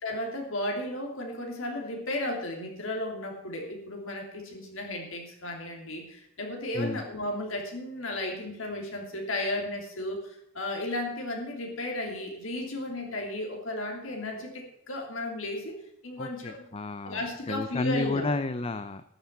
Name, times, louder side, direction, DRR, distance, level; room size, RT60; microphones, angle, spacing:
voice 1, 0.0-15.8 16.0-16.6 17.0-18.4, left 1 dB, 75° left, 1 dB, 3.0 m, -34 dB
voice 2, 16.2-19.0, left 2 dB, 30° left, 11 dB, 0.5 m, -32 dB
13.0 x 6.9 x 9.4 m, 0.77 s
head